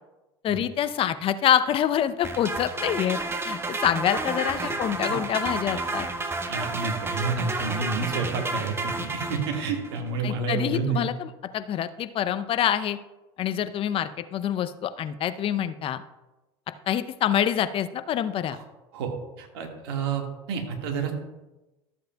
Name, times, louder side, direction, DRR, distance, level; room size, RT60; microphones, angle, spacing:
voice 1, 0.4-3.2 3.4-6.1 10.2-13.0 13.4-16.0 16.9-18.6, left 10 dB, 40° left, 12 dB, 0.6 m, -26 dB
sound 1, 2.2-10.0, right 2 dB, 20° right, 1.0 m, -31 dB
voice 2, 4.6-5.1 5.7-5.8 6.2-11.0 18.5-18.6 18.9-19.1 19.4-21.1, right 5 dB, 70° right, 2 dB, 1.7 m, -30 dB
13.5 x 7.6 x 2.3 m, 1.0 s
hypercardioid pair, 80°, 14 cm